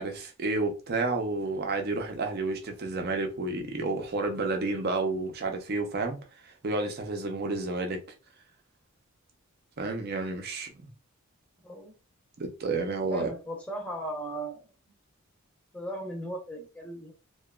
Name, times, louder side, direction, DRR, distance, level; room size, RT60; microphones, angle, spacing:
voice 1, 0.0-6.2 6.4-8.0 9.8-10.7 12.4-13.3, right 3 dB, 45° right, 0.5 m, -30 dB
voice 2, 13.1-14.7 15.7-17.1, right 1 dB, 5° left, 0.6 m, -37 dB
2.8 x 2.2 x 2.2 m
head